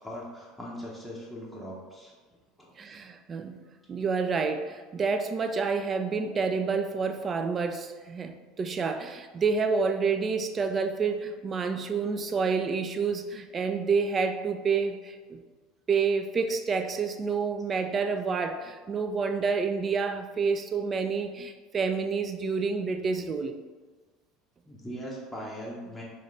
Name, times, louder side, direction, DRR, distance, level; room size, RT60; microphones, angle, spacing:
voice 1, 0.0-2.1 2.6-3.0 24.7-26.0, equal, ahead, -6 dB, 0.8 m, -40 dB
voice 2, 2.8-3.6 3.9-15.4 15.9-23.6, right 5 dB, 35° right, 6 dB, 0.4 m, -28 dB
3.7 x 3.0 x 3.2 m, 1.4 s
hypercardioid pair, 80°, 0 cm